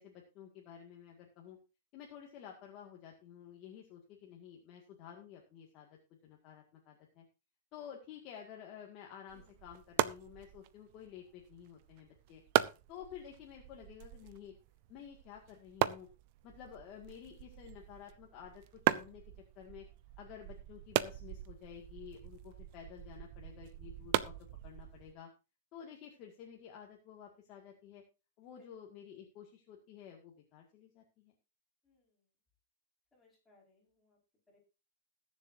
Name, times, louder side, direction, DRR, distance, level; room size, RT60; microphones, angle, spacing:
voice 1, 0.0-1.6 1.9-5.9 6.2-7.2 7.7-12.4 12.9-14.5 14.9-16.1 16.4-18.6 18.9-19.2 19.6-19.9 20.2-24.3 24.6-25.3 25.7-28.0 28.4-31.3, left 9 dB, 25° left, 0 dB, 1.9 m, -52 dB
sound 1, 9.3-25.1, right 15 dB, 35° right, 0.5 m, -38 dB
voice 2, 31.8-32.2 33.1-34.2 34.5-34.6, left 3 dB, 5° left, -4 dB, 5.1 m, -68 dB
20.5 x 7.3 x 2.7 m, 0.30 s
supercardioid pair, 175°, 0 cm